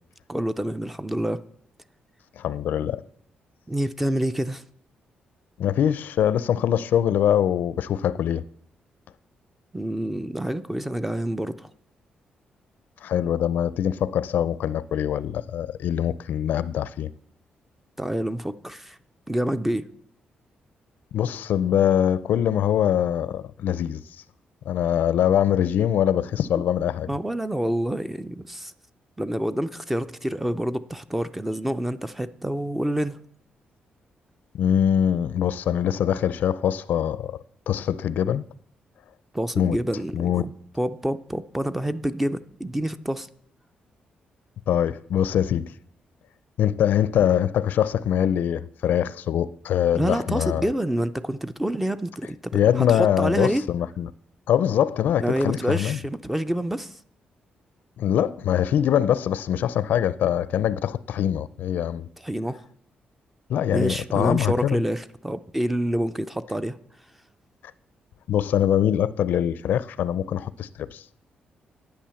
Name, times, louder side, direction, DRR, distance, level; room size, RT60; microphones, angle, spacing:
voice 1, 0.3-1.4 3.7-4.6 9.7-11.7 18.0-19.0 19.3-19.8 26.5-26.6 27.1-28.7 29.2-33.2 39.3-40.5 40.8-43.3 49.9-52.5 52.8-53.6 55.2-57.0 62.2-62.6 63.7-66.8, right 1 dB, 5° right, 0.4 m, -27 dB
voice 2, 2.4-3.0 5.6-8.4 13.0-17.1 21.1-24.0 24.7-27.1 34.5-37.4 37.7-38.4 39.6-39.8 40.1-40.5 44.7-45.7 46.6-50.7 52.5-54.1 54.5-56.0 58.0-62.1 63.5-64.8 68.3-71.0, left 10 dB, 75° left, 0.4 m, -23 dB
10.5 x 8.7 x 7.0 m
wide cardioid pair, 170°, 3 cm